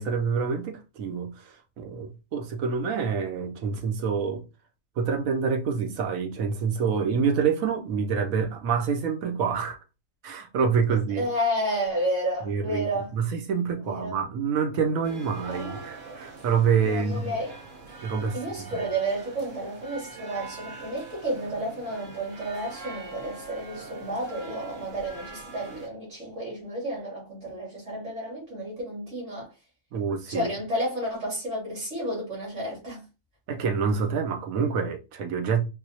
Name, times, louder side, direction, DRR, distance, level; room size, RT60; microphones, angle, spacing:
voice 1, 0.0-4.4 5.0-9.8 10.2-11.2 12.4-12.9 13.1-17.4 18.0-18.4 18.7-18.8 29.9-30.5 33.5-35.6, right 6 dB, 80° right, 1.1 m, -27 dB
voice 2, 11.1-13.1 13.8-14.1 15.5-15.8 16.9-17.6 18.3-29.5 30.3-33.0, right 1 dB, 60° right, 2.6 m, -31 dB
sound 1, 15.0-25.9, right 3 dB, 45° right, 0.9 m, -43 dB
4.7 x 2.0 x 2.7 m
omnidirectional pair, 1.4 m